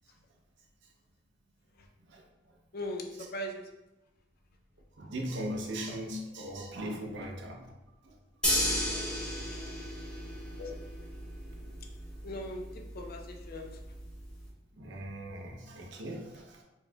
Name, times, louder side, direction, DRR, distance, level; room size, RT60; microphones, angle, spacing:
voice 1, 2.7-3.7 10.6-10.7 12.2-13.8, left 1 dB, 50° left, 3 dB, 0.5 m, -39 dB
voice 2, 5.0-7.7 8.0-8.1 11.6-11.7 14.8-16.6, equal, 65° right, 1 dB, 0.7 m, -39 dB
sound 1, 8.4-14.5, left 1 dB, 5° left, 0.9 m, -35 dB
4.5 x 3.0 x 2.3 m, 1.0 s
head